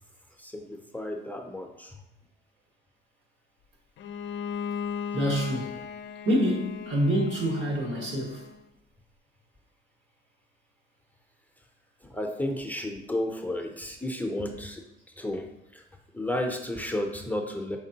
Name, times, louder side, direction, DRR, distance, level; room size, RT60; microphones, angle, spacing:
voice 1, 0.4-2.0 12.0-14.8 15.2-15.8 16.1-17.8, left 1 dB, 10° left, 0.6 m, -32 dB
Bowed string instrument, 4.0-8.7, left 7 dB, 70° left, 0.5 m, -37 dB
voice 2, 5.1-5.8 6.2-8.4, equal, 70° right, 1.4 m, -26 dB
5.2 x 3.4 x 2.8 m
cardioid pair, 90°, 20 cm